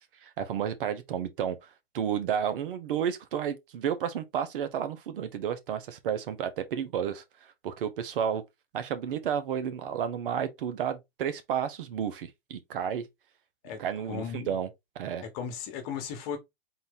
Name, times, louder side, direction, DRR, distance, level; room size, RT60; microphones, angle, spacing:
voice 1, 0.2-1.6 1.9-7.2 7.6-8.4 8.7-13.1 13.8-14.7 14.9-15.2, right 8 dB, 60° right, 0.9 m, -31 dB
voice 2, 14.1-14.5 15.3-16.4, left 7 dB, 40° left, 1.3 m, -35 dB
4.0 x 2.6 x 3.6 m
hypercardioid pair, 130°, 30 cm